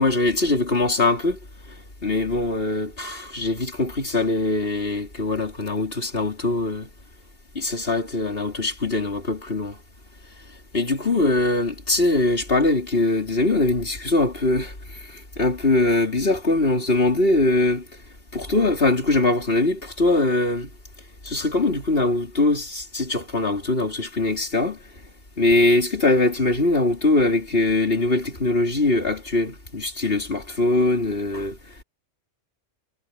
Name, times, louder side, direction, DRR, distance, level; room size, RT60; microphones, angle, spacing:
voice 1, 0.0-1.4 2.0-6.9 7.5-9.8 10.7-14.7 15.1-17.8 18.3-20.7 21.2-24.8 25.4-31.6, left 2 dB, 50° left, 4.1 m, -22 dB
omnidirectional pair, 1.3 m